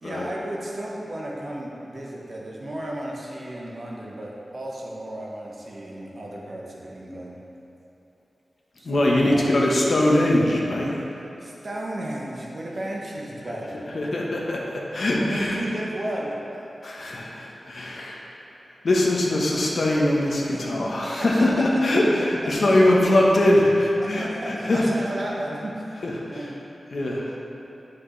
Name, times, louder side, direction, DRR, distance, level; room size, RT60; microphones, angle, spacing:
voice 1, 0.0-7.4 8.8-9.5 11.4-13.8 15.2-16.3 19.3-19.5 20.5-20.7 21.0-21.5 21.9-22.0 22.6-22.7 24.0-26.6, right 1 dB, 60° right, -3 dB, 1.2 m, -34 dB
voice 2, 8.8-11.2 13.9-14.6 14.9-15.6 16.8-18.2 18.8-24.9 26.0-26.5 26.9-27.3, left 1 dB, 70° left, -3 dB, 1.1 m, -22 dB
7.8 x 5.9 x 3.3 m, 2.9 s
cardioid pair, 55°, 0 cm